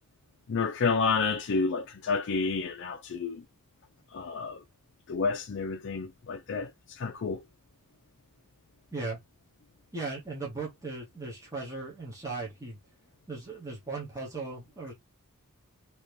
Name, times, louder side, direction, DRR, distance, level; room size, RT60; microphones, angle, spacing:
voice 1, 0.5-3.4 4.1-4.6 5.1-6.7 7.0-7.4, left 4 dB, 55° left, 0.4 m, -29 dB
voice 2, 9.9-12.8 13.3-14.9, right 3 dB, 15° right, 1.0 m, -37 dB
2.9 x 2.8 x 3.2 m
head